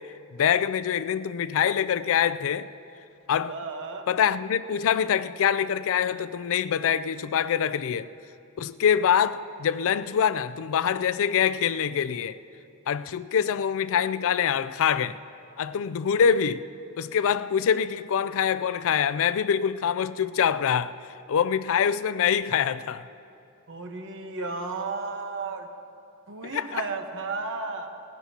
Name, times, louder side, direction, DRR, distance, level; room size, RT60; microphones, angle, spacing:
voice 1, 0.3-2.7 3.3-3.5 4.1-8.1 8.6-12.4 12.9-15.2 15.6-16.7 17.0-21.0 21.3-23.0 26.4-26.9, left 8 dB, 65° left, 0.4 m, -25 dB
voice 2, 3.5-4.1 23.7-25.7 26.3-27.9, right 3 dB, 60° right, 1.2 m, -33 dB
19.5 x 15.5 x 2.9 m
head